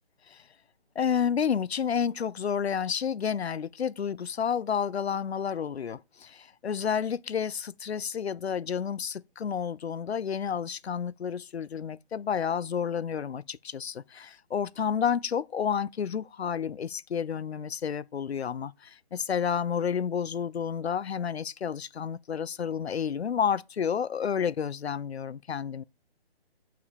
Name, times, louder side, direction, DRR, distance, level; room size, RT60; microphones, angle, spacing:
voice 1, 1.0-25.8, left 7 dB, 80° left, 0.5 m, -30 dB
6.9 x 5.9 x 4.4 m
figure-of-eight pair, 145°, 32 cm